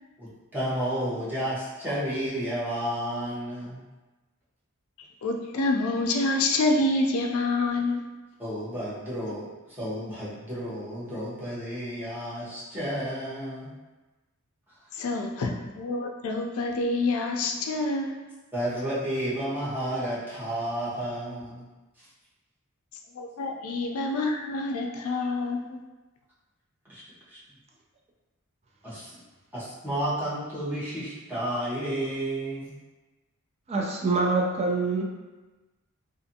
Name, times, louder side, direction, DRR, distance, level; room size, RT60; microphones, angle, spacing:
voice 1, 0.2-3.8 8.4-13.8 18.5-21.6 22.0-22.1 26.8-27.4 28.8-29.1 29.5-32.7, right 1 dB, 10° right, -10 dB, 0.7 m, -32 dB
voice 2, 5.2-8.0 14.9-18.2 23.2-25.8, left 2 dB, 80° left, 3 dB, 0.4 m, -27 dB
voice 3, 33.7-35.0, right 3 dB, 30° right, -1 dB, 0.3 m, -25 dB
2.5 x 2.5 x 2.7 m, 1.2 s
head